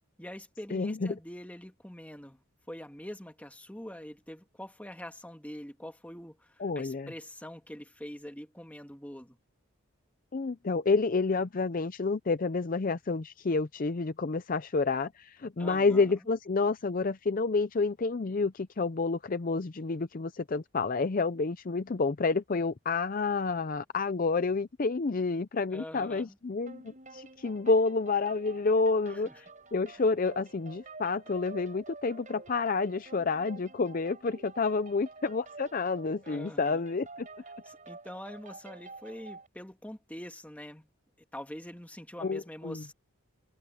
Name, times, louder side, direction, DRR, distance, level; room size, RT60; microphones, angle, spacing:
voice 1, 0.2-2.4 2.7-9.4 15.6-16.1 25.7-26.4 29.1-29.4 29.9-30.0 36.2-36.8 37.6-40.9 41.3-42.9, left 1 dB, 5° left, 2.0 m, -44 dB
voice 2, 0.7-1.1 6.6-7.1 10.3-37.3 42.2-42.8, left 4 dB, 40° left, 0.5 m, -29 dB
sound 1, 26.7-39.5, right 3 dB, 35° right, 6.3 m, -49 dB
head